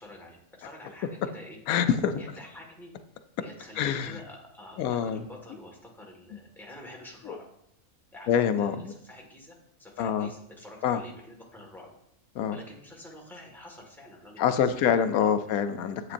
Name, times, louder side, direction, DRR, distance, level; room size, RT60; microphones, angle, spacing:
voice 1, 0.0-1.6 2.2-2.9 3.4-7.4 8.1-11.9 12.5-15.5, left 1 dB, ahead, -2 dB, 1.5 m, -48 dB
voice 2, 1.7-2.2 3.8-4.2 4.8-5.2 7.3-7.4 8.3-8.9 10.0-10.3 10.8-11.0 12.4-12.6 14.4-16.0, left 8 dB, 90° left, 10 dB, 1.1 m, -25 dB
9.8 x 8.2 x 2.5 m, 0.76 s
omnidirectional pair, 1.5 m